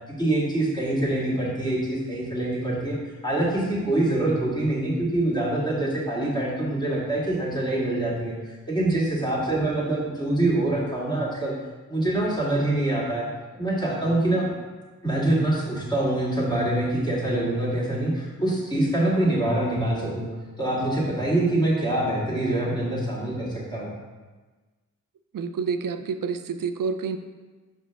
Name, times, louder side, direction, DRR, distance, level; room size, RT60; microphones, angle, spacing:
voice 1, 0.2-3.0 3.2-11.5 11.9-13.3 13.5-14.6 15.0-20.3 20.6-23.9, right 1 dB, 15° left, -6 dB, 1.8 m, -25 dB
voice 2, 8.8-9.1 25.3-27.2, right 5 dB, 85° right, 9 dB, 0.5 m, -29 dB
5.7 x 5.0 x 3.4 m, 1.3 s
wide cardioid pair, 70°, 32 cm